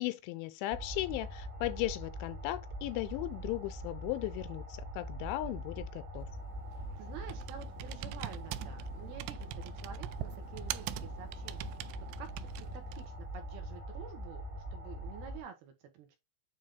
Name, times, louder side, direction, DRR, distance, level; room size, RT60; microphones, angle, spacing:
voice 1, 0.0-4.7 4.9-6.3, left 17 dB, 90° left, 3.0 m, -36 dB
sound 1, 0.7-15.4, equal, 40° right, 2.1 m, -43 dB
Computer keyboard, 6.2-13.2, right 18 dB, 90° right, 2.4 m, -44 dB
voice 2, 7.0-11.7 12.2-12.7 12.9-16.2, right 7 dB, 70° right, 2.7 m, -49 dB
9.1 x 3.5 x 3.7 m
omnidirectional pair, 5.4 m